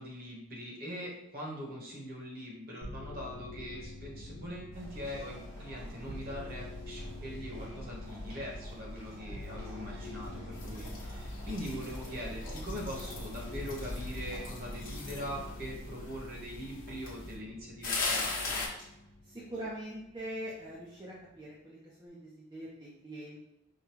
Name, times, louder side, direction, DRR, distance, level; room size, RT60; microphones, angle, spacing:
voice 1, 0.0-18.6, equal, 45° right, -3 dB, 1.1 m, -42 dB
sound 1, 2.8-20.2 20.6-21.3, left 1 dB, 85° left, 0.9 m, -47 dB
sound 2, 4.7-15.6, equal, 85° right, 1.3 m, -47 dB
sound 3, 10.5-17.3 17.8-18.7, left 3 dB, 45° left, 1.0 m, -39 dB
voice 2, 19.2-23.4, right 1 dB, 20° right, -6 dB, 0.5 m, -43 dB
5.0 x 2.2 x 3.0 m, 0.91 s
head